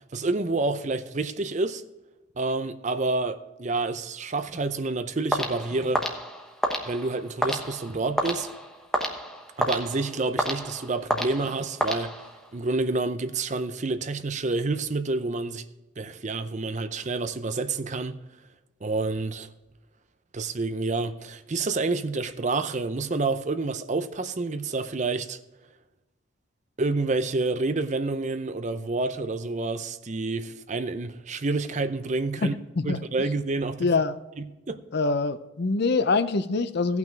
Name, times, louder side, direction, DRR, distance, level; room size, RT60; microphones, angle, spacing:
voice 1, 0.1-1.8 2.4-6.1 6.9-8.5 9.6-12.2 12.5-15.6 16.0-18.2 18.8-19.5 20.3-25.4 26.8-32.5 32.8-33.9 34.7-34.8, right 3 dB, 35° right, 0.6 m, -28 dB
sound 1, 5.3-12.6, equal, ahead, 1.1 m, -30 dB
voice 2, 32.4-33.1 33.8-34.2 34.9-37.0, left 3 dB, 55° left, 0.6 m, -25 dB
16.5 x 5.9 x 4.5 m
head